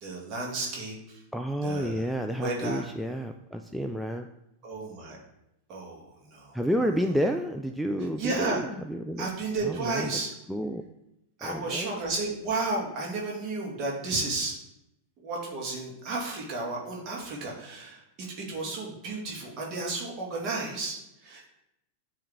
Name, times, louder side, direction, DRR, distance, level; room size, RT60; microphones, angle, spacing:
voice 1, 0.0-1.2 1.6-2.9 4.6-5.2 5.7-6.6 8.2-8.6 9.2-10.3 11.4-14.6 15.2-21.5, right 3 dB, 35° right, -2 dB, 1.9 m, -33 dB
voice 2, 1.3-4.3 6.5-9.3 9.6-10.2 10.5-10.8 11.4-12.0, equal, ahead, 3 dB, 0.3 m, -30 dB
8.4 x 3.3 x 3.4 m, 0.87 s
figure-of-eight pair, 90°, 0 cm